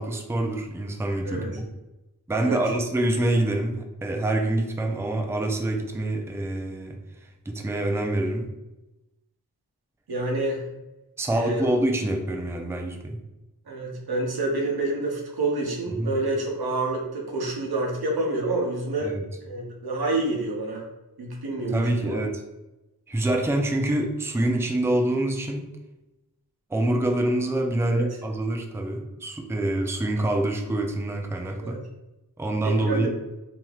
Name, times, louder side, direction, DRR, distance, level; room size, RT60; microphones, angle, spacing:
voice 1, 0.0-1.6 2.3-7.0 7.5-8.5 11.2-13.2 15.9-16.1 19.0-19.3 21.7-22.4 23.1-25.7 26.7-31.8 32.4-33.1, right 1 dB, 5° right, 3 dB, 0.4 m, -26 dB
voice 2, 1.2-1.6 2.4-2.6 10.1-10.6 11.3-11.7 13.7-19.1 19.4-20.8 21.2-22.2 27.9-28.0 31.6-31.8 32.6-33.1, right 2 dB, 85° right, 0 dB, 0.8 m, -28 dB
3.2 x 2.7 x 2.4 m, 0.99 s
wide cardioid pair, 45°, 37 cm